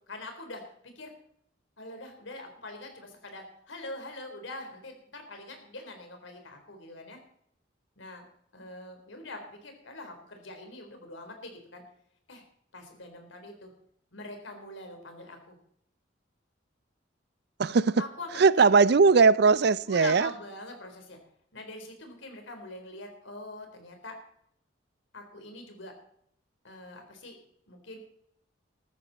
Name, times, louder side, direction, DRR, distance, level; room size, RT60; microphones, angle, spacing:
voice 1, 0.1-1.1 1.8-7.2 8.0-8.3 8.5-11.8 12.3-12.4 12.7-13.7 14.1-15.6 18.0-18.4 19.9-21.2 21.5-24.1 25.1-25.9 26.6-27.4 27.7-28.0, left 2 dB, 80° left, 4.0 m, -43 dB
voice 2, 17.6-18.0 18.3-20.3, right 4 dB, 55° right, 0.4 m, -20 dB
14.0 x 13.5 x 4.2 m
head